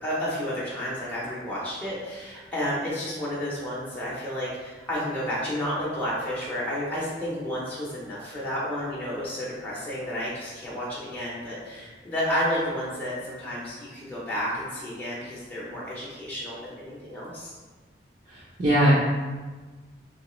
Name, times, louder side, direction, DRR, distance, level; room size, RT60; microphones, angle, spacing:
voice 1, 0.0-17.6, equal, 10° left, -8 dB, 0.6 m, -31 dB
voice 2, 18.3-18.9, right 1 dB, 40° right, -8 dB, 0.5 m, -21 dB
3.0 x 3.0 x 3.0 m, 1.4 s
head